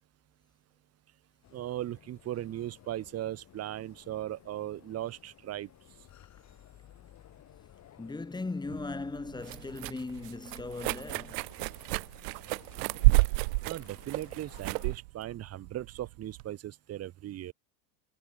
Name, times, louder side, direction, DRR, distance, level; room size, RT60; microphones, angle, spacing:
sound 1, 1.4-14.9, left 12 dB, 35° left, 4.6 m, -57 dB
voice 1, 1.5-5.7 13.6-17.5, right 13 dB, 30° right, 1.2 m, -38 dB
voice 2, 8.0-11.5, left 3 dB, 10° left, 1.9 m, -38 dB
sound 2, 8.7-16.5, right 26 dB, 85° right, 0.6 m, -30 dB
supercardioid pair, 135°, 46 cm